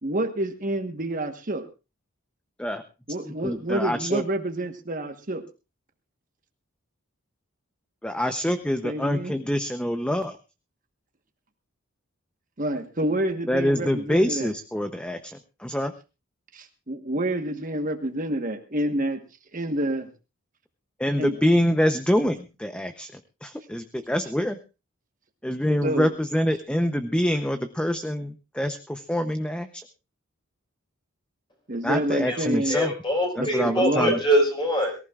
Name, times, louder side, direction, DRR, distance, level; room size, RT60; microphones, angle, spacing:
voice 1, 0.0-1.6 3.1-5.4 8.8-9.3 12.6-14.5 16.5-19.2 19.5-20.1 21.2-21.4 25.8-26.1 31.7-32.8 33.4-34.1, right 1 dB, 40° right, 5 dB, 1.3 m, -28 dB
voice 2, 3.2-4.2 8.0-10.4 13.5-15.9 21.0-24.6 25.4-29.9 31.8-32.9 33.3-34.2, equal, 5° left, 8 dB, 0.7 m, -26 dB
voice 3, 32.7-35.0, equal, 25° left, 3 dB, 4.8 m, -23 dB
23.0 x 14.5 x 2.4 m, 0.30 s
head